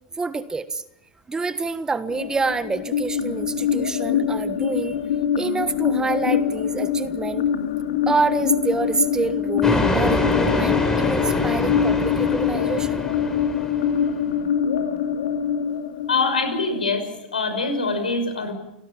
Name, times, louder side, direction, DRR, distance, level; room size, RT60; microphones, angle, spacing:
voice 1, 0.2-0.8 1.3-5.0 5.4-7.5 8.1-13.0, right 4 dB, 15° right, 12 dB, 1.4 m, -27 dB
sound 1, 2.1-17.1, left 8 dB, 70° left, 2.7 m, -24 dB
sound 2, 9.6-14.1, left 1 dB, 10° left, 5.0 m, -25 dB
voice 2, 16.1-18.5, left 3 dB, 85° left, 8 dB, 5.8 m, -24 dB
30.0 x 17.5 x 7.3 m, 0.87 s
hypercardioid pair, 100°, 5 cm